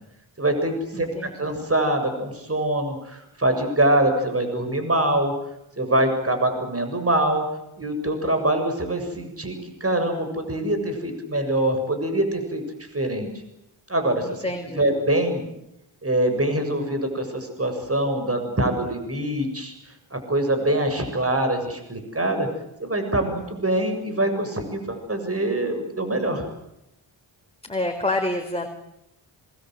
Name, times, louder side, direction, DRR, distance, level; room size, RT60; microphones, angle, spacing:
voice 1, 0.4-5.3 5.8-7.4 7.8-12.6 12.9-13.3 13.9-14.5 14.7-15.4 16.0-22.5 22.8-26.4, right 1 dB, 30° right, 6 dB, 7.2 m, -24 dB
voice 2, 0.9-1.6 14.2-14.8 27.6-28.7, left 2 dB, 10° left, 4 dB, 4.3 m, -28 dB
27.0 x 24.5 x 7.9 m, 0.84 s
cardioid pair, 50°, 48 cm